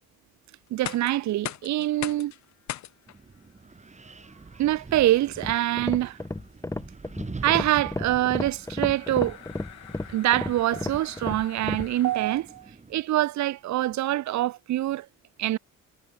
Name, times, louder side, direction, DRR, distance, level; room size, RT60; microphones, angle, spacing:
sound 1, 0.7-12.6, left 12 dB, 65° left, 1.1 m, -44 dB
voice 1, 0.7-2.3 4.6-6.2 7.4-9.4 10.1-15.1 15.4-15.6, right 14 dB, 70° right, 0.8 m, -25 dB
Wind, 3.1-13.0, right 4 dB, 25° right, 2.6 m, -45 dB
sound 2, 5.3-11.9, left 2 dB, 10° left, 1.1 m, -33 dB
cardioid pair, 90°, 30 cm